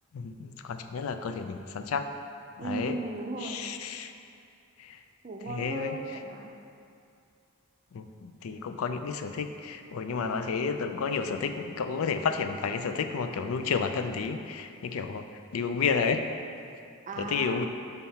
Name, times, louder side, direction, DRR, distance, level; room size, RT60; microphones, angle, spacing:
voice 1, 0.1-2.1 2.6-3.0 3.4-4.1 4.8-5.0 5.5-6.0 7.9-15.3 15.5-16.2 17.2-17.7, left 5 dB, 70° left, 8 dB, 0.4 m, -31 dB
voice 2, 2.6-3.6 5.2-6.5 17.1-17.6, right 2 dB, 35° right, 3 dB, 0.5 m, -36 dB
5.6 x 4.4 x 5.5 m, 2.4 s
head